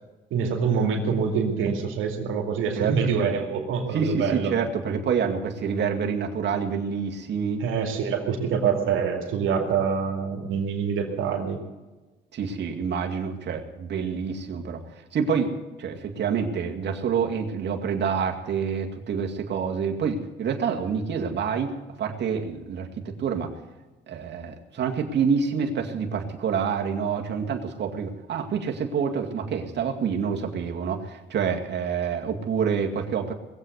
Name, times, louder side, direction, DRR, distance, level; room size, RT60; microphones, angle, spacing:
voice 1, 0.3-4.5 7.6-11.6, right 6 dB, 85° right, 2 dB, 2.5 m, -25 dB
voice 2, 2.8-3.3 3.9-7.6 12.3-14.8 15.1-23.5 24.1-33.3, right 6 dB, 60° right, 2 dB, 2.2 m, -27 dB
20.5 x 8.1 x 8.0 m, 1.2 s
cardioid pair, 90°, 20 cm